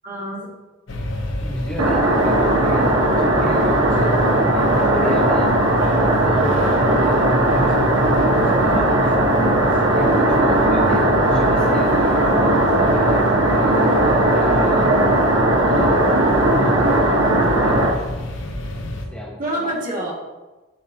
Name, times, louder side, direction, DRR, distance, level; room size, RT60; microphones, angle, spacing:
voice 1, 0.0-0.5 8.3-8.6 19.4-20.1, right 1 dB, 45° right, -5 dB, 1.9 m, -28 dB
sound 1, 0.9-19.1, equal, 80° left, 1.0 m, -28 dB
voice 2, 1.4-4.2 4.5-5.5 6.0-6.6 6.9-9.2 9.9-15.0 15.6-16.1 16.5-18.3 19.1-19.7, equal, 5° left, -4 dB, 1.2 m, -33 dB
sound 2, 1.8-17.9, right 1 dB, 90° right, 1.2 m, -17 dB
12.0 x 4.4 x 2.8 m, 1.1 s
head